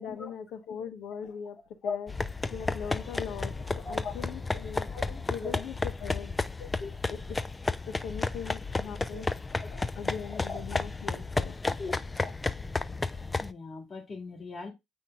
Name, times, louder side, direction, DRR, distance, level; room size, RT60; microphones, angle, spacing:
voice 1, 0.0-2.1 2.5-4.9 5.3-6.3 7.1-7.4 7.9-9.3 9.7-11.6, left 7 dB, 65° left, 0.7 m, -40 dB
sound 1, 2.1-13.5, left 3 dB, 20° left, 0.4 m, -32 dB
Doorbell, 2.5-11.3, left 3 dB, 85° left, 3.1 m, -57 dB
voice 2, 4.9-5.6 6.8-6.9 9.1-9.3 9.6-9.7 10.5-10.6 11.8-12.0 12.2-12.3 13.4-14.7, left 4 dB, 45° left, 2.9 m, -38 dB
7.8 x 5.2 x 2.4 m
hypercardioid pair, 50°, 0 cm